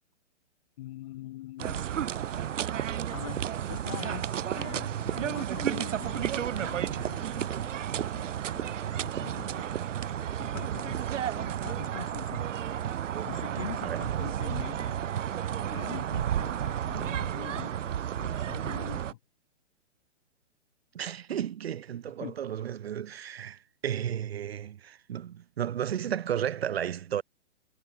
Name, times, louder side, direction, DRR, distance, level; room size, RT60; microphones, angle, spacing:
voice 1, 0.8-1.9 3.1-3.4 3.7-9.8 10.4-11.0 11.4-12.5 13.2-15.0 15.7-19.2 22.2-22.4, left 15 dB, 25° left, 1.9 m, -44 dB
sound 1, 1.6-19.1, right 10 dB, 80° right, 1.0 m, -32 dB
voice 2, 20.9-27.2, right 9 dB, 55° right, 0.7 m, -33 dB
hypercardioid pair, 175°, 37 cm